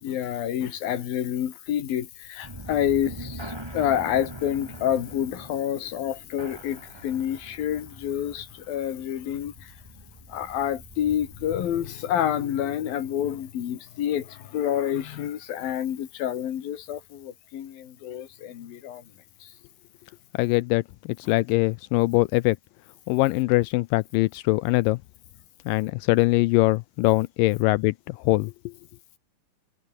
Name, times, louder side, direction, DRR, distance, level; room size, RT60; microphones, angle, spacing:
voice 1, 0.0-9.7 10.3-19.0 19.4-19.5, left 10 dB, 70° left, 3.8 m, -28 dB
sound 1, 2.4-11.9, right 1 dB, 5° right, 5.0 m, -43 dB
voice 2, 20.4-20.8 21.3-22.6 23.1-25.0 25.7-28.5, left 21 dB, 90° left, 1.9 m, -22 dB
omnidirectional pair, 4.5 m